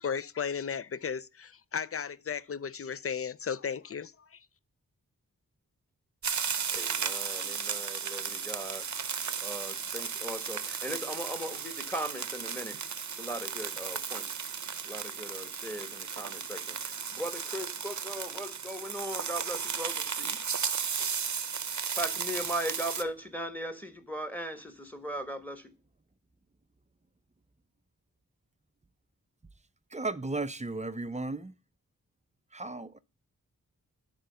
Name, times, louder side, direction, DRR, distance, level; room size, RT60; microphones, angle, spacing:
voice 1, 0.0-4.4, left 6 dB, 40° left, 0.5 m, -35 dB
sound 1, 6.2-23.0, right 6 dB, 55° right, 0.7 m, -35 dB
voice 2, 6.7-8.9 9.4-12.8 13.1-14.3 14.8-20.4 21.9-25.7, equal, 5° left, 1.4 m, -38 dB
voice 3, 29.9-31.5 32.5-33.0, right 3 dB, 20° right, 0.6 m, -35 dB
11.0 x 3.8 x 6.7 m
cardioid pair, 40°, 34 cm